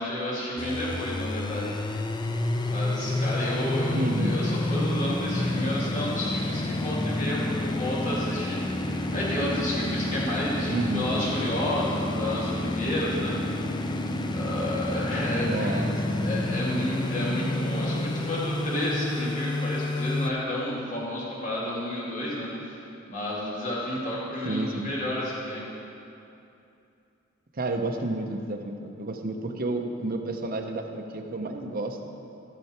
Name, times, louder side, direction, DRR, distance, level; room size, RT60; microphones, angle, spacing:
voice 1, 0.0-1.8 2.7-13.4 14.3-15.8 16.2-25.6, left 1 dB, 40° left, -6 dB, 2.3 m, -31 dB
sound 1, 0.6-20.3, left 1 dB, 20° left, 0.5 m, -29 dB
voice 2, 3.9-4.4 10.7-11.1 15.4-16.4 24.4-24.9 27.5-32.0, right 2 dB, 50° right, 4 dB, 0.8 m, -31 dB
14.0 x 6.7 x 4.4 m, 2.7 s
head